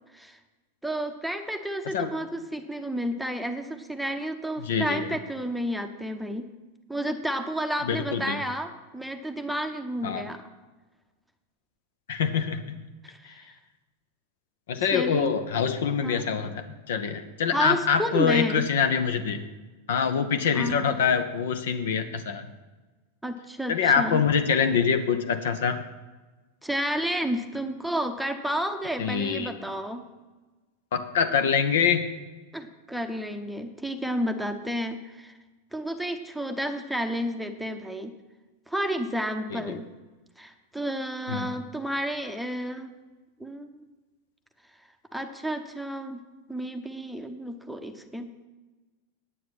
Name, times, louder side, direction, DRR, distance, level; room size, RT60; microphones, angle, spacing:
voice 1, 0.8-6.5 6.9-10.4 13.0-13.5 14.8-15.3 16.0-16.3 17.5-18.7 20.5-21.0 23.2-24.2 26.6-30.0 32.5-35.3 35.7-38.1 38.7-39.9 40.4-42.9 43.4-43.8 45.1-46.2 46.5-48.3, equal, ahead, 6 dB, 0.8 m, -31 dB
voice 2, 4.6-5.0 7.9-8.4 10.0-10.2 12.1-12.6 14.7-19.4 19.9-22.5 23.7-25.8 29.0-29.5 30.9-32.0 39.5-39.8 41.3-41.5, left 6 dB, 60° left, 9 dB, 0.8 m, -25 dB
9.4 x 8.3 x 5.9 m, 1.2 s
figure-of-eight pair, 90°, 0 cm